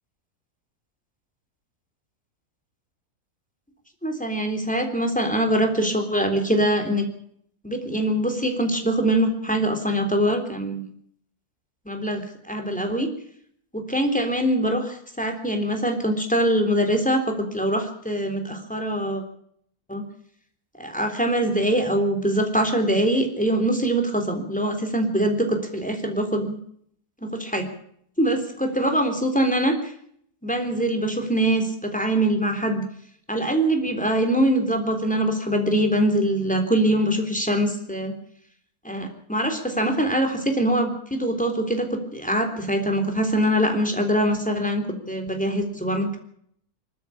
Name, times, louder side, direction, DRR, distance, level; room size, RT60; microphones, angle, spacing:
voice 1, 4.0-7.1 7.6-10.8 11.9-13.1 13.7-19.2 19.9-20.1 20.8-26.6 27.2-27.7 28.2-29.9 30.4-32.8 33.3-38.2 38.8-46.2, right 1 dB, 5° left, 5 dB, 3.6 m, -23 dB
24.5 x 12.5 x 8.6 m, 0.67 s
omnidirectional pair, 1.6 m